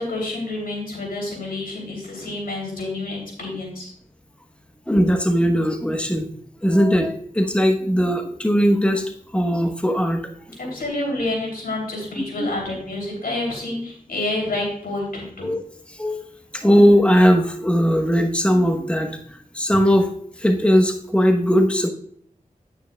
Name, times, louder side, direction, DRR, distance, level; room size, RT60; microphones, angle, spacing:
voice 1, 0.0-3.9 10.6-15.5, left 2 dB, 85° left, 0 dB, 3.0 m, -28 dB
voice 2, 4.9-6.3 6.6-9.1 9.3-10.2 12.2-12.5 15.4-15.6 16.0-16.2 16.5-19.2 19.5-20.1 20.4-21.9, equal, 5° left, 4 dB, 1.1 m, -18 dB
9.3 x 8.9 x 2.3 m, 0.62 s
cardioid pair, 45°, 15 cm